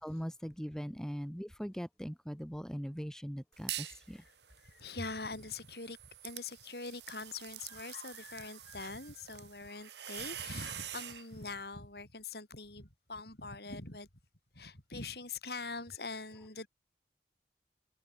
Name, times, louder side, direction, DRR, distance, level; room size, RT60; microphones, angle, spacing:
voice 1, 0.0-4.2, equal, 5° left, 2.0 m, -40 dB
sound 1, 3.5-4.0 4.4-11.3, right 11 dB, 75° right, 3.7 m, -46 dB
voice 2, 3.9-4.2 4.6-6.0 6.2-14.1 14.5-16.7, left 3 dB, 65° left, 6.6 m, -43 dB
open air
head